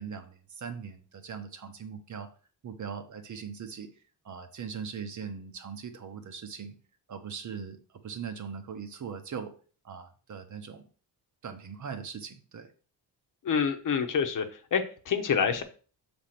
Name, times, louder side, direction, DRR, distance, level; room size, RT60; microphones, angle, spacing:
voice 1, 0.0-2.3 2.6-3.9 4.2-6.7 7.1-7.8 8.0-9.5 9.8-10.8 11.4-12.7, right 6 dB, 45° right, 7 dB, 0.9 m, -40 dB
voice 2, 13.4-14.4 14.7-15.6, left 6 dB, 50° left, 7 dB, 0.9 m, -27 dB
6.4 x 3.5 x 5.9 m, 0.39 s
wide cardioid pair, 150°, 41 cm